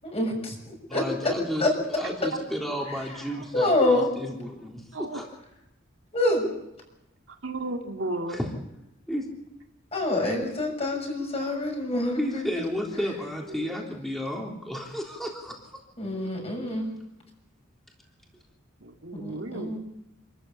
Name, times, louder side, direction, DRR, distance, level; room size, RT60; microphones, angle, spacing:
voice 1, 0.0-1.3 1.6-1.7 3.5-4.1 6.1-6.5 9.9-12.2 16.0-16.9 19.2-19.8, left 2 dB, 30° left, 2 dB, 6.7 m, -26 dB
voice 2, 0.9-1.6 1.9-5.2 8.3-8.5 9.1-9.2 12.2-15.6, equal, ahead, -1 dB, 3.5 m, -32 dB
voice 3, 7.3-8.4 12.9-13.0 13.5-13.8 18.8-19.8, right 2 dB, 65° right, 3 dB, 2.3 m, -34 dB
27.5 x 14.0 x 8.7 m, 0.90 s
head